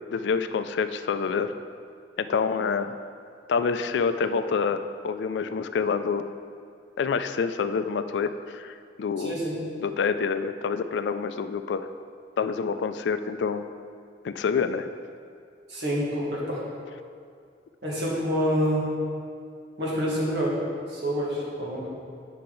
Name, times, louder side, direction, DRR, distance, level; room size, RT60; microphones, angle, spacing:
voice 1, 0.1-1.5 2.2-3.0 3.5-6.3 7.0-9.4 9.8-11.9 12.4-13.6 14.2-14.9, left 5 dB, 75° left, 10 dB, 0.3 m, -27 dB
voice 2, 9.2-9.6 15.7-16.6 17.8-18.9 19.8-20.6 20.9-21.9, equal, 75° right, -4 dB, 1.8 m, -27 dB
8.3 x 5.7 x 3.9 m, 2.3 s
head